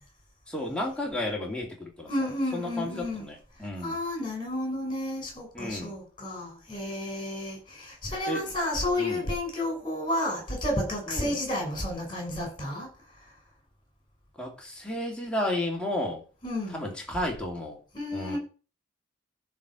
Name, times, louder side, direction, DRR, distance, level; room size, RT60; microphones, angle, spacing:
voice 1, 0.5-4.0 5.5-5.9 8.3-8.5 9.0-9.3 11.1-11.4 14.4-16.2 16.7-17.8 18.1-18.4, left 1 dB, 5° left, 2.6 m, -33 dB
voice 2, 2.1-3.2 3.8-12.9 16.4-16.8 17.9-18.4, left 1 dB, 25° left, 6.4 m, -31 dB
13.5 x 4.6 x 6.4 m
head